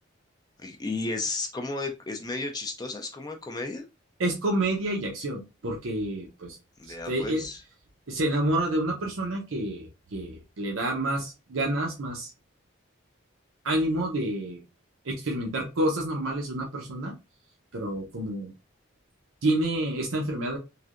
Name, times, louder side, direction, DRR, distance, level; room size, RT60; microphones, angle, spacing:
voice 1, 0.6-3.9 6.8-7.6, left 3 dB, 20° left, 4 dB, 0.4 m, -33 dB
voice 2, 4.2-6.6 6.9-7.5 8.1-12.3 13.6-14.6 15.0-17.1 17.7-18.5 19.4-20.6, right 1 dB, 90° right, 0 dB, 0.7 m, -28 dB
3.2 x 2.6 x 2.4 m, 0.27 s
head